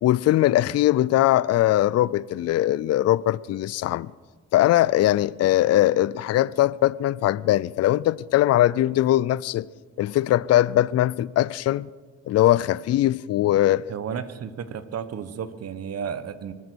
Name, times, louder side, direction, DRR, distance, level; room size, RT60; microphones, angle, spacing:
voice 1, 0.0-4.1 4.5-9.7 10.0-11.9 12.3-13.8, left 14 dB, 55° left, 0.4 m, -21 dB
voice 2, 13.9-16.5, right 7 dB, 55° right, 1.1 m, -33 dB
24.5 x 9.5 x 6.2 m
cardioid pair, 90°, 30 cm